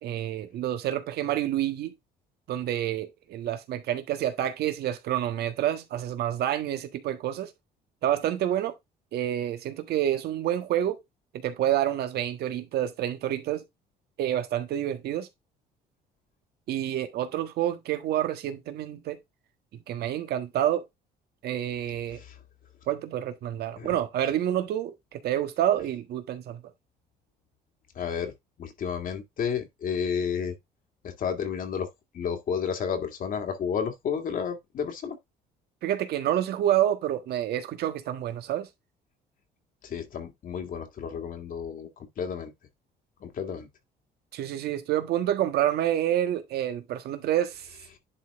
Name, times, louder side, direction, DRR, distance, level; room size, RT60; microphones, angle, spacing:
voice 1, 0.0-1.9 2.5-7.5 8.0-8.7 9.1-11.0 11.4-13.6 14.2-15.3 16.7-19.2 19.9-20.8 21.4-22.2 22.9-26.6 35.8-38.7 44.3-47.7, right 11 dB, 70° right, 1.5 m, -28 dB
voice 2, 28.0-28.3 28.6-30.6 31.0-31.9 32.1-35.2 39.8-41.9 42.2-42.5 43.2-43.7, left 7 dB, 55° left, 2.2 m, -31 dB
11.0 x 3.9 x 3.6 m
cardioid pair, 110°, 17 cm